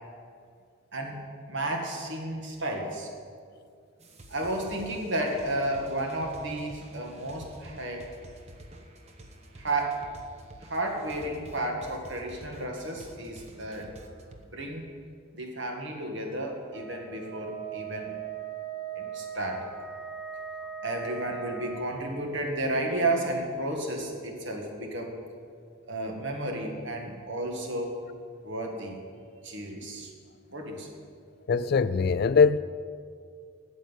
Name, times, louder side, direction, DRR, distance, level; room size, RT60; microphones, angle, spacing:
voice 1, 0.9-3.1 4.3-8.1 9.6-10.0 10.6-13.9 14.5-14.9 15.3-18.2 19.0-19.7 20.8-25.2 25.9-28.0 28.4-29.0 29.4-30.1 30.5-30.9, right 1 dB, 60° right, 1.9 m, -32 dB
Cool Loop, 4.0-14.4, right 1 dB, 30° right, 1.0 m, -49 dB
Wind instrument woodwind instrument, 16.7-22.0, right 7 dB, 10° right, 2.3 m, -39 dB
voice 2, 31.5-32.6, left 5 dB, 50° left, 0.3 m, -21 dB
9.2 x 7.9 x 9.1 m
head